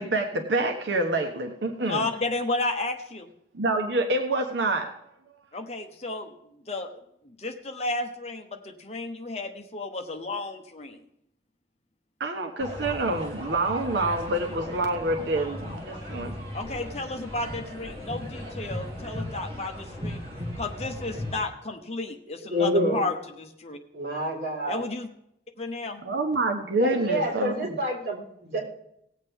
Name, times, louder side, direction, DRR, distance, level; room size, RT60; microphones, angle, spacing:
voice 1, 0.0-2.0 3.5-4.9 12.2-16.4 26.0-27.8, right 2 dB, 85° right, 3 dB, 1.1 m, -27 dB
voice 2, 1.8-3.3 5.5-11.0 16.5-20.2 20.6-23.8 24.7-25.1 25.6-26.0, left 2 dB, 35° left, 5 dB, 1.0 m, -33 dB
sound 1, 12.6-21.4, left 1 dB, 30° right, 2.9 m, -37 dB
voice 3, 22.5-23.1 23.9-24.9 26.8-28.6, equal, 60° right, -3 dB, 4.6 m, -27 dB
18.5 x 8.1 x 3.6 m, 0.76 s
head